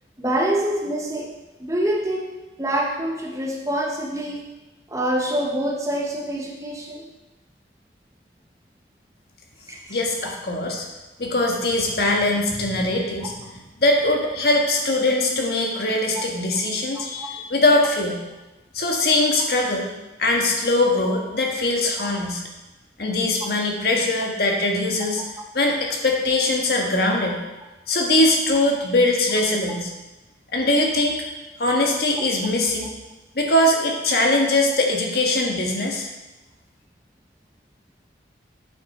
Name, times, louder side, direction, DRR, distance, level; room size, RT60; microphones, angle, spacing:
voice 1, 0.2-1.3 1.6-2.3 2.6-4.5 4.9-7.0 9.7-10.0 13.2-13.3 17.2-17.3 22.0-22.1, right 1 dB, 15° right, 0 dB, 1.0 m, -26 dB
voice 2, 9.9-10.8 11.2-13.4 13.8-18.2 18.7-19.9 20.2-22.4 23.0-25.2 25.5-27.4 27.9-29.9 30.5-31.2 31.6-32.9 33.3-36.1, left 2 dB, 55° left, 0 dB, 1.6 m, -21 dB
8.6 x 7.8 x 4.3 m, 1.1 s
head